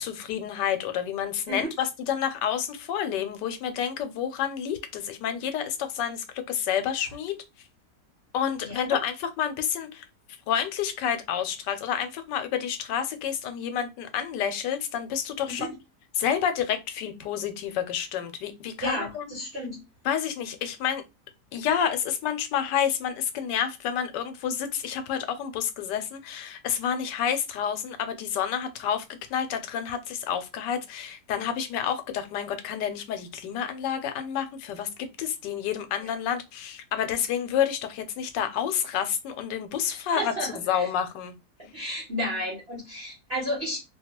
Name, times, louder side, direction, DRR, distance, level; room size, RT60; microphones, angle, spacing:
voice 1, 0.0-7.4 8.3-10.1 10.5-15.7 16.1-19.4 20.0-21.0 21.5-29.0 29.3-40.3 40.7-41.3, left 8 dB, 85° left, 1.2 m, -29 dB
voice 2, 8.6-9.0 15.6-15.7 18.7-19.8 40.2-40.9 41.6-43.8, equal, 45° right, 0.9 m, -32 dB
2.8 x 2.3 x 2.8 m
omnidirectional pair, 1.8 m